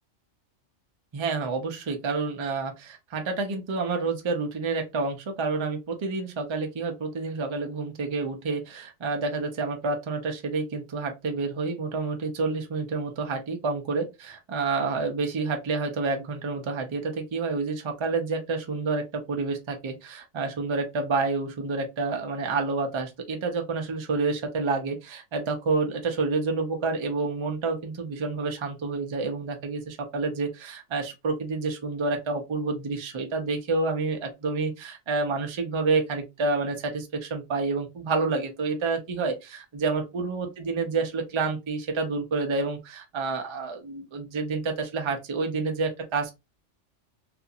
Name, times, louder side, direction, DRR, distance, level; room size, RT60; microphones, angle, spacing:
voice 1, 1.1-46.3, right 3 dB, 40° right, 0.4 m, -29 dB
2.5 x 2.5 x 2.7 m
omnidirectional pair, 1.3 m